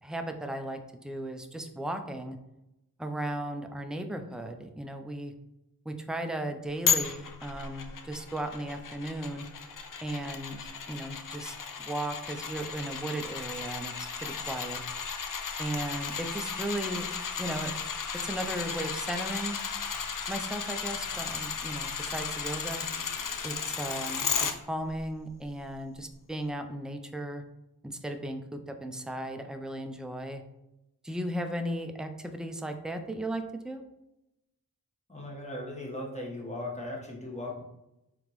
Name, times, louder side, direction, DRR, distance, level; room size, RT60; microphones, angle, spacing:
voice 1, 0.0-2.4 3.0-5.3 5.9-9.5 10.0-14.8 15.6-17.1 17.4-17.7 18.2-19.6 20.3-22.9 23.4-24.3 24.7-27.4 27.8-30.4 31.0-33.8, right 1 dB, ahead, 6 dB, 0.4 m, -36 dB
sound 1, 6.9-24.5 25.0-25.1, left 6 dB, 60° left, 0.5 m, -34 dB
voice 2, 35.1-37.6, left 1 dB, 20° left, -2 dB, 1.2 m, -38 dB
3.8 x 3.5 x 3.0 m, 0.90 s
wide cardioid pair, 45°, 37 cm